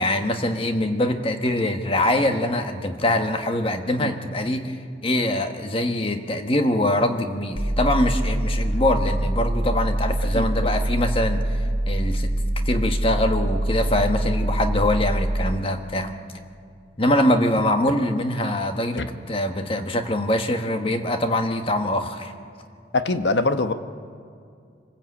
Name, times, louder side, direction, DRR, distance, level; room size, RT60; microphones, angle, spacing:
voice 1, 0.0-4.8 5.0-11.6 11.9-12.3 12.6-16.2 17.0-22.3, left 1 dB, 30° left, 6 dB, 1.4 m, -23 dB
sound 1, 7.5-15.5, right 1 dB, 40° right, 1.5 m, -24 dB
voice 2, 22.9-23.7, left 2 dB, 75° left, 9 dB, 1.1 m, -23 dB
25.5 x 15.0 x 8.7 m, 2.4 s
head